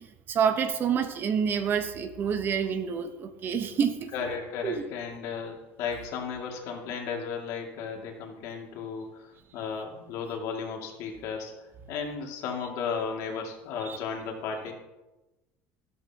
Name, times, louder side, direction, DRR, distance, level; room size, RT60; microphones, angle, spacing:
voice 1, 0.0-4.1 4.6-4.8 13.8-14.0, right 7 dB, 35° right, 8 dB, 1.0 m, -28 dB
voice 2, 4.1-11.6 11.9-14.7, left 6 dB, 60° left, 1 dB, 2.4 m, -34 dB
13.5 x 12.5 x 3.0 m, 1.1 s
cardioid pair, 140°, 6 cm